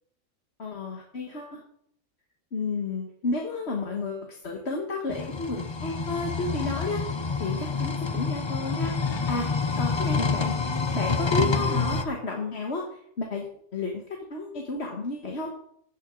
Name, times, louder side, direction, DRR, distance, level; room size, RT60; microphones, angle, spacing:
voice 1, 0.6-1.6 2.5-9.5 9.8-10.6 10.9-14.0 14.3-15.5, left 3 dB, 50° left, 0 dB, 1.7 m, -32 dB
sound 1, 5.1-12.1, left 4 dB, 35° left, 0.4 m, -27 dB
15.5 x 9.5 x 3.8 m, 0.69 s
omnidirectional pair, 1.5 m